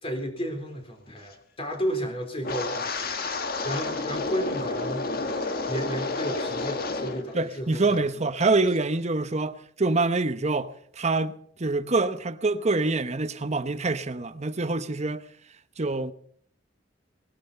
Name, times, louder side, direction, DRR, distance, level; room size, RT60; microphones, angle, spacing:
voice 1, 0.0-5.3 5.7-8.1, equal, 30° left, 3.9 m, -33 dB
Wind, 2.4-7.3 7.5-8.0 8.4-8.7, left 3 dB, 55° left, 1.7 m, -30 dB
voice 2, 7.3-11.3 11.6-15.2 15.8-16.1, right 3 dB, 35° right, 0.9 m, -25 dB
19.5 x 12.0 x 5.7 m
head